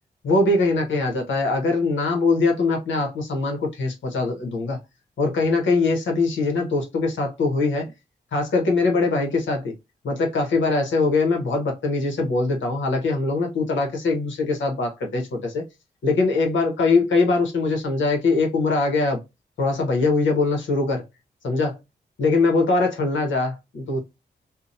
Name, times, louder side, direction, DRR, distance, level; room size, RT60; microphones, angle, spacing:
voice 1, 0.2-4.8 5.2-7.9 8.3-9.7 10.0-15.6 16.0-19.2 19.6-21.0 21.4-21.8 22.2-24.0, left 3 dB, 85° left, 1.0 m, -22 dB
2.7 x 2.2 x 2.5 m
cardioid pair, 45°, 19 cm